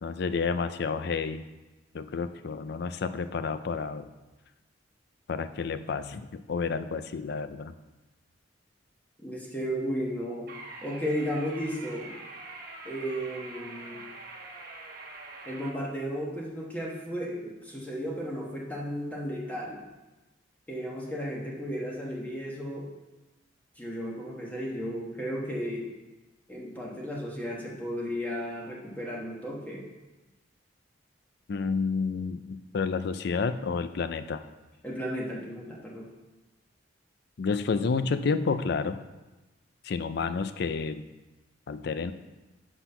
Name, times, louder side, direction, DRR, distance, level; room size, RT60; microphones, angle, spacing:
voice 1, 0.0-1.4 1.9-4.1 5.3-7.7 31.5-34.5 37.4-39.0 39.8-41.1 41.7-42.1, left 5 dB, 60° left, 11 dB, 0.4 m, -30 dB
voice 2, 9.2-10.5 10.8-12.1 12.8-14.0 15.4-19.8 20.7-22.9 23.8-25.9 26.5-29.8 34.8-36.1, equal, 10° left, -3 dB, 1.3 m, -34 dB
sound 1, 10.5-15.7, right 2 dB, 55° right, 1.1 m, -44 dB
6.1 x 5.9 x 5.6 m, 1.1 s
head